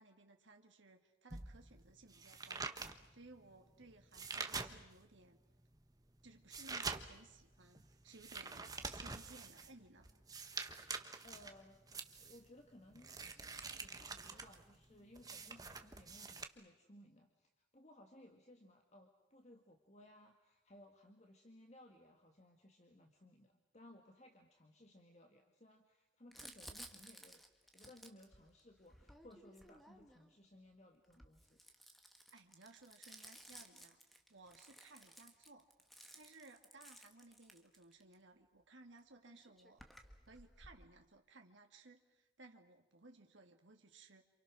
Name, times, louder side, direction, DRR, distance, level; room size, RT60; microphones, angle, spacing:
voice 1, 0.0-2.7 3.1-5.4 6.2-10.1 32.3-34.0 34.3-35.7 36.1-39.8 40.3-44.2, right 3 dB, 70° right, 3 dB, 2.2 m, -60 dB
sound 1, 1.3-5.2 5.6-16.5, right 4 dB, 20° right, 1.2 m, -47 dB
voice 2, 11.2-11.8 12.2-13.2 13.8-27.4 27.7-31.6, left 1 dB, 35° left, 3 dB, 2.0 m, -61 dB
Crumpling crinkling, 26.3-30.4 31.0-38.1 39.0-39.1 39.3-40.8, equal, ahead, 1.6 m, -58 dB
28.0 x 28.0 x 6.3 m, 0.99 s
head